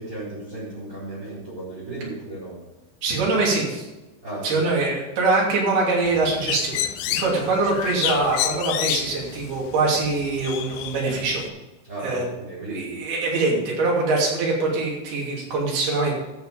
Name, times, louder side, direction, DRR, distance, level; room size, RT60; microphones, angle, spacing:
voice 1, 0.0-2.6 4.2-4.7 11.8-13.0, right 2 dB, 25° right, -8 dB, 4.5 m, -35 dB
voice 2, 3.0-3.9 4.4-11.5 12.0-12.2 12.7-16.2, right 3 dB, 65° right, -3 dB, 4.8 m, -23 dB
Bird, 6.1-11.5, left 12 dB, 80° left, 2.5 m, -30 dB
14.0 x 7.0 x 5.2 m, 1.1 s
omnidirectional pair, 5.0 m